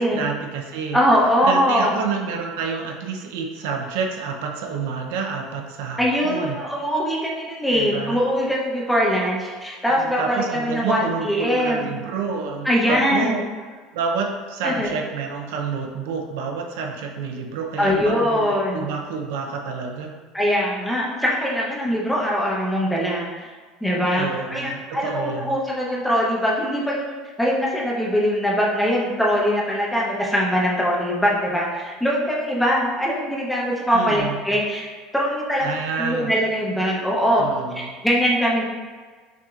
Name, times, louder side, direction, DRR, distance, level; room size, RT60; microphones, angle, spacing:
voice 1, 0.1-1.0 1.4-6.6 7.7-8.2 9.9-13.4 13.9-20.2 21.9-22.0 24.1-25.6 33.9-34.4 35.6-36.3 37.3-37.9, right 5 dB, 80° right, 2 dB, 0.6 m, -29 dB
voice 2, 0.9-2.0 6.0-11.9 12.6-13.4 14.6-14.9 17.8-18.9 20.3-23.5 23.8-37.5 37.7-38.6, equal, 5° left, -4 dB, 0.7 m, -22 dB
6.0 x 2.7 x 2.4 m, 1.5 s
cardioid pair, 145°, 0 cm